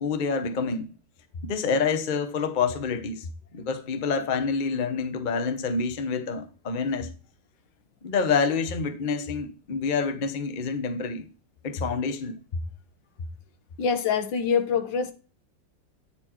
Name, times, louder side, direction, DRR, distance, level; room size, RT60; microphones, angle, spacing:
voice 1, 0.0-0.9 1.4-7.1 8.0-11.3 11.6-12.3, left 5 dB, 45° left, 0.6 m, -27 dB
voice 2, 13.8-15.1, left 6 dB, 80° left, 1.6 m, -25 dB
9.1 x 4.4 x 4.3 m
omnidirectional pair, 2.0 m